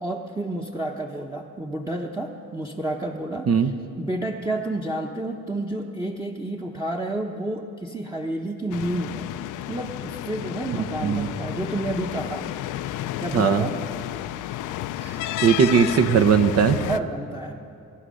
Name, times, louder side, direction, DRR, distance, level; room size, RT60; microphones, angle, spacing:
voice 1, 0.0-3.7 4.0-9.3 9.7-12.5 13.2-13.7 16.7-17.5, right 1 dB, 10° right, 0 dB, 0.9 m, -30 dB
sound 1, 8.7-17.0, left 13 dB, 85° left, 0.5 m, -32 dB
voice 2, 13.3-13.7 15.0-15.1 15.4-16.8, right 6 dB, 55° right, 8 dB, 0.8 m, -19 dB
20.5 x 10.0 x 6.4 m, 2.6 s
cardioid pair, 90°, 30 cm